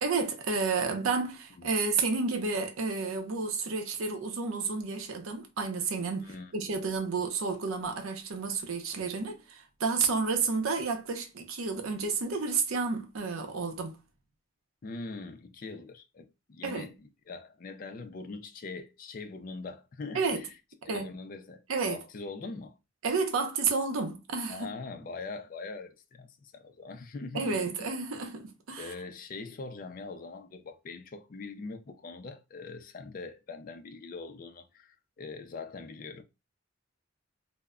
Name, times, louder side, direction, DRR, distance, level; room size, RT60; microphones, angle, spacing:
voice 1, 0.0-14.0 16.6-16.9 20.1-20.4 20.9-21.1 21.7-22.0 23.0-24.7 27.3-28.9, right 4 dB, 85° right, 0.6 m, -31 dB
voice 2, 6.2-6.7 14.8-20.5 20.8-22.8 24.5-27.6 28.8-36.2, left 3 dB, 40° left, 0.3 m, -42 dB
2.1 x 2.0 x 3.5 m
head